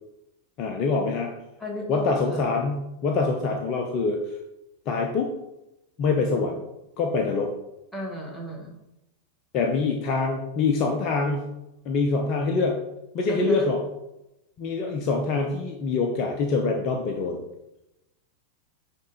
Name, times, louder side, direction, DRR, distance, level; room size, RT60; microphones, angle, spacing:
voice 1, 0.6-1.3 1.9-4.2 4.9-5.3 6.0-6.6 7.0-7.5 9.5-11.5 11.8-12.8 13.1-13.8 14.6-17.4, left 4 dB, 40° left, 2 dB, 0.8 m, -25 dB
voice 2, 1.6-2.5 7.9-8.8 13.3-13.7, equal, 5° left, -1 dB, 1.9 m, -34 dB
9.1 x 3.8 x 4.2 m, 0.92 s
figure-of-eight pair, 90°, 0 cm